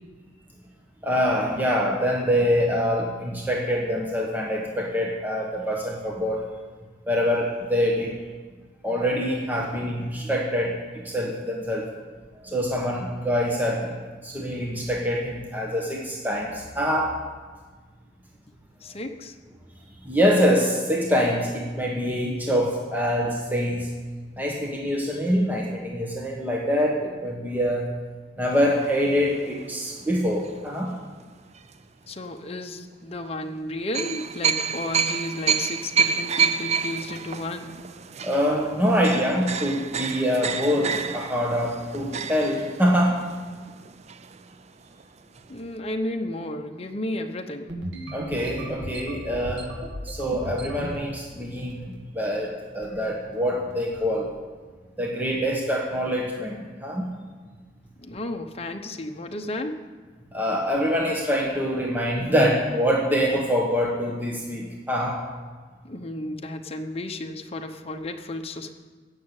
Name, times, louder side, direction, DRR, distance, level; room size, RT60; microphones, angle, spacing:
voice 1, 1.0-6.5 7.1-8.2 8.8-11.9 12.4-13.9 14.2-17.2 20.0-23.9 24.4-27.9 28.4-31.0 38.2-43.3 48.1-54.4 55.0-57.1 60.3-65.3, equal, 10° right, -1 dB, 1.2 m, -25 dB
voice 2, 18.8-19.3 32.1-37.7 45.5-47.7 58.0-59.8 65.8-68.7, left 1 dB, 35° left, 5 dB, 1.0 m, -33 dB
sound 1, 28.5-31.0 31.6-31.7 33.9-44.7 45.0-45.1 45.4-45.5, right 6 dB, 40° right, 0.5 m, -29 dB
sound 2, 47.7-51.0 51.4-51.9 52.2-52.5 52.8-53.1 53.7-54.0, right 1 dB, 75° right, 1.9 m, -36 dB
16.0 x 6.6 x 8.3 m, 1.4 s
head